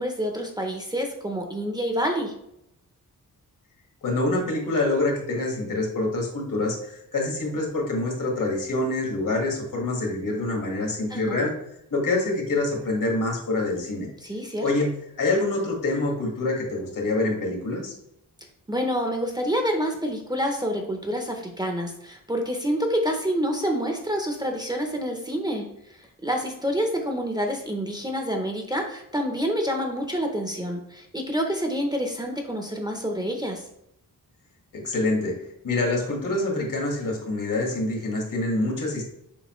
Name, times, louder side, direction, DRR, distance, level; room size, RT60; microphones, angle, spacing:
voice 1, 0.0-2.3 11.1-11.5 14.2-14.6 18.7-25.7 26.0-33.6, equal, 10° right, 3 dB, 0.6 m, -27 dB
voice 2, 4.0-11.5 11.9-14.1 14.6-14.9 15.2-18.0 34.7-39.0, left 2 dB, 65° left, 1 dB, 1.7 m, -26 dB
7.1 x 5.0 x 3.0 m, 0.78 s
wide cardioid pair, 170°, 34 cm